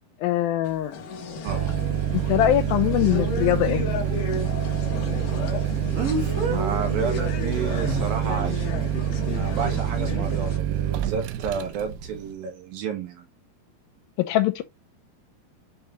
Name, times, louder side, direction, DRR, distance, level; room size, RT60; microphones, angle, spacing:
voice 1, 0.2-1.0 2.1-3.9 14.2-14.6, left 13 dB, 80° left, 2.3 m, -22 dB
Speech, 0.6-0.7 5.9-6.6 7.8-8.1, right 2 dB, 40° right, 3.0 m, -27 dB
sound 1, 0.9-10.6, left 4 dB, 65° left, 2.7 m, -33 dB
voice 2, 1.4-1.8 6.5-8.6 9.3-13.3, right 6 dB, 70° right, 3.3 m, -31 dB
sound 2, 1.5-12.3, right 11 dB, 90° right, 2.6 m, -27 dB
6.9 x 4.9 x 3.1 m
omnidirectional pair, 4.5 m